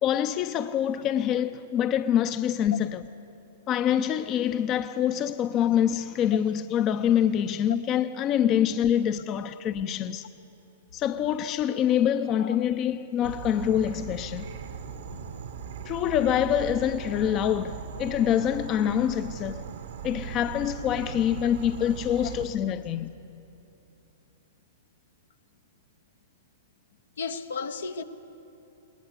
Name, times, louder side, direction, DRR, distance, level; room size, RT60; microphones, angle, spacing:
voice 1, 0.0-3.0 3.7-10.3 10.9-14.4 15.9-19.6 20.0-23.1, left 10 dB, 35° left, 0.6 m, -25 dB
Insect / Frog, 13.2-22.4, right 7 dB, 70° right, 1.3 m, -38 dB
voice 2, 27.2-28.0, left 5 dB, 75° left, 1.0 m, -34 dB
20.5 x 20.0 x 8.3 m
hypercardioid pair, 110°, 0 cm